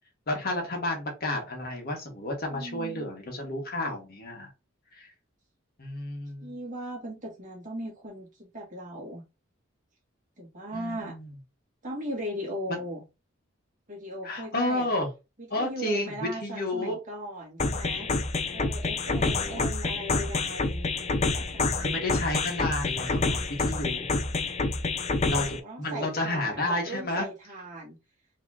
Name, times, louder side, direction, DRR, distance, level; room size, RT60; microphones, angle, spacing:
voice 1, 0.3-4.5 4.9-5.1 5.8-6.5 10.7-11.3 12.7-12.8 14.2-15.1 15.5-17.0 19.2-19.7 21.8-24.1 25.3-27.3, left 1 dB, 50° left, 2 dB, 1.6 m, -31 dB
voice 2, 2.5-3.1 6.4-9.2 10.4-11.1 11.8-13.0 13.9-14.9 15.4-18.1 18.5-21.9 24.9-28.0, equal, 40° right, -2 dB, 2.0 m, -38 dB
sound 1, 17.6-25.6, left 3 dB, 35° left, 0.5 m, -28 dB
4.8 x 3.4 x 2.8 m, 0.26 s
head